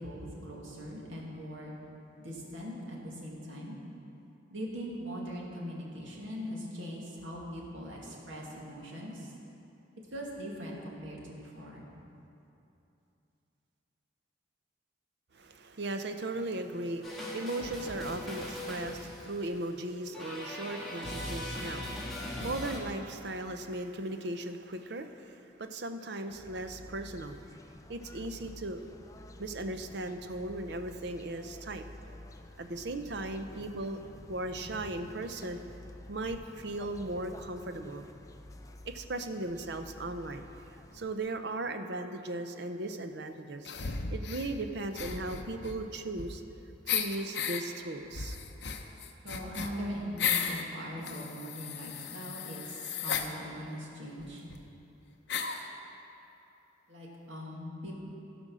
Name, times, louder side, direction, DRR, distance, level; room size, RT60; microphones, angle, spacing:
voice 1, 0.0-1.7 2.2-3.8 4.5-9.3 10.1-11.8 49.2-54.4 56.9-58.0, equal, 75° right, -3 dB, 2.0 m, -41 dB
voice 2, 15.3-27.4 27.9-28.9 29.4-31.8 32.6-34.0 34.3-35.6 36.1-38.1 38.8-40.4 40.9-43.7 44.1-46.4 46.9-48.4, right 2 dB, 60° right, 8 dB, 0.6 m, -37 dB
sound 1, 17.0-19.4 20.1-22.8, left 1 dB, ahead, 1.6 m, -39 dB
sound 2, 26.3-41.2, left 1 dB, 15° left, 0.3 m, -50 dB
sound 3, 43.7-44.5 44.9-46.5 46.9-47.6 48.1-50.6 51.0-53.3 54.2-54.3 54.5-54.6 55.3-55.7, left 7 dB, 60° left, 0.7 m, -35 dB
15.5 x 5.2 x 6.2 m, 2.9 s
head